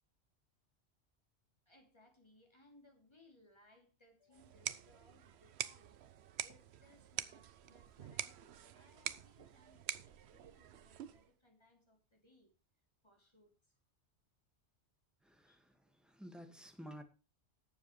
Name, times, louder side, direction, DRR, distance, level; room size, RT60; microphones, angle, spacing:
voice 1, 1.7-6.0 6.4-12.5 13.0-13.8 15.5-15.6, left 1 dB, 25° left, 2.8 m, -67 dB
sound 1, 4.3-11.3, right 10 dB, 70° right, 0.9 m, -46 dB
voice 2, 15.2-17.0, equal, ahead, 1.7 m, -53 dB
19.0 x 7.2 x 3.2 m
omnidirectional pair, 1.2 m